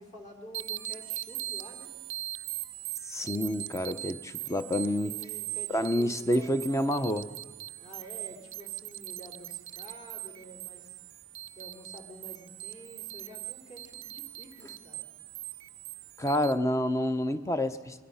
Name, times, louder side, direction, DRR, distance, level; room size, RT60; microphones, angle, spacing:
voice 1, 0.0-1.9 5.0-7.4 7.8-11.0 11.6-15.1, equal, 35° left, 2 dB, 3.6 m, -49 dB
sound 1, 0.5-16.5, right 15 dB, 65° right, 0.6 m, -41 dB
voice 2, 3.1-5.1 5.7-7.3 16.2-18.0, left 1 dB, 15° left, 11 dB, 0.8 m, -28 dB
27.0 x 21.5 x 5.6 m, 1.3 s
head